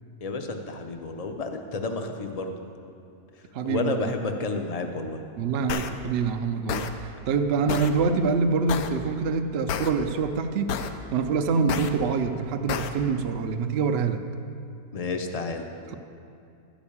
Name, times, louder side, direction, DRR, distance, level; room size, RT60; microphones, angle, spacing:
voice 1, 0.2-2.5 3.6-5.2 14.9-15.6, left 3 dB, 35° left, 5 dB, 0.6 m, -30 dB
voice 2, 3.5-4.1 5.4-10.7 11.1-14.2 15.9-16.0, right 5 dB, 60° right, 6 dB, 0.7 m, -25 dB
sound 1, 5.7-5.9 6.7-6.9 7.7-7.9 8.7-8.9 9.7-9.9 10.7-10.9 11.7-11.9 12.7-12.9, left 7 dB, 85° left, 1.1 m, -29 dB
12.5 x 5.2 x 8.5 m, 2.6 s
omnidirectional pair, 1.5 m